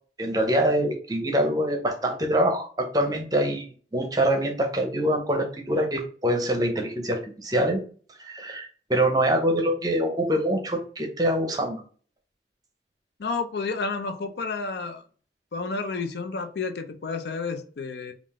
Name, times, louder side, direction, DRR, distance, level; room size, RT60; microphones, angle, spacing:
voice 1, 0.2-7.8 8.2-11.8, right 1 dB, 20° right, 3 dB, 0.7 m, -25 dB
voice 2, 13.2-15.0 15.5-18.1, left 4 dB, 70° left, 7 dB, 0.5 m, -30 dB
3.7 x 2.4 x 3.6 m, 0.42 s
head